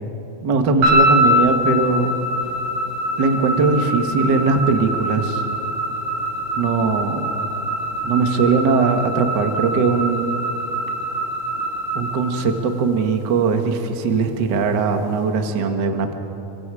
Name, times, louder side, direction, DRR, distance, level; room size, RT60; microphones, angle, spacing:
voice 1, 0.4-2.2 3.2-5.4 6.6-7.3 8.0-10.3 11.9-16.1, right 4 dB, 55° right, 5 dB, 1.2 m, -20 dB
sound 1, 0.8-13.1, equal, 90° right, 9.6 m, -23 dB
29.5 x 23.5 x 4.9 m, 3.0 s
omnidirectional pair, 4.3 m